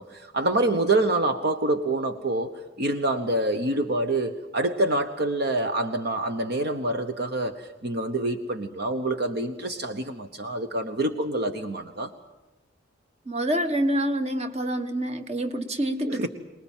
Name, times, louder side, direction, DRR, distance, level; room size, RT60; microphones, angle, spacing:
voice 1, 0.0-12.1 16.1-16.3, right 2 dB, 55° right, 7 dB, 1.1 m, -26 dB
voice 2, 13.2-16.3, right 1 dB, 35° right, 8 dB, 1.5 m, -27 dB
24.0 x 20.0 x 7.4 m, 1.1 s
head